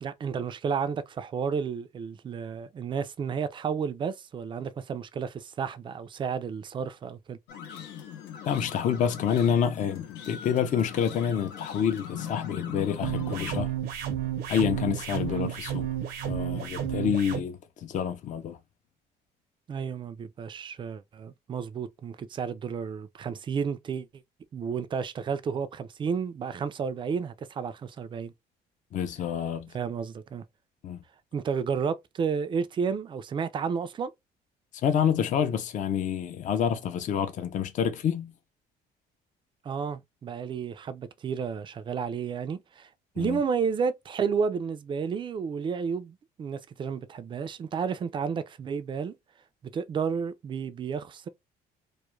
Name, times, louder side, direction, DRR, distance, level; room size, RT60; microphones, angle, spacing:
voice 1, 0.0-7.4 15.3-15.5 19.7-24.1 24.5-28.3 29.7-30.4 31.3-34.1 39.6-42.9 43.2-49.1 49.7-51.3, right 6 dB, 30° right, 0.3 m, -31 dB
sound 1, 7.5-13.6, left 9 dB, 85° left, 0.7 m, -39 dB
voice 2, 8.4-13.7 14.5-15.9 16.2-18.6 28.9-29.7 30.8-31.0 34.8-38.3 43.2-43.4, left 8 dB, 50° left, 0.5 m, -28 dB
sound 2, 13.0-17.4, right 10 dB, 70° right, 0.6 m, -31 dB
2.3 x 2.1 x 3.0 m
cardioid pair, 110°, 17 cm